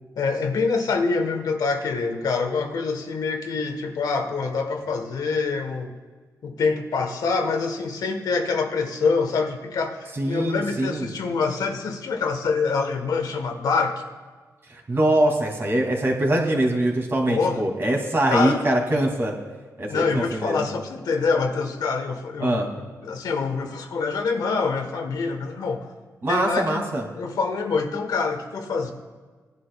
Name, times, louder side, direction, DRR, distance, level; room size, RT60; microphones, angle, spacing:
voice 1, 0.2-5.9 6.4-14.0 17.3-17.6 18.3-18.6 19.9-25.9 26.3-26.8 27.2-28.9, left 4 dB, 80° left, 5 dB, 1.2 m, -25 dB
voice 2, 10.2-11.1 14.7-19.3 19.8-20.7 22.4-22.7 26.2-27.0, right 1 dB, 40° right, 0 dB, 2.4 m, -23 dB
18.0 x 11.0 x 2.3 m, 1.4 s
wide cardioid pair, 120°, 6 cm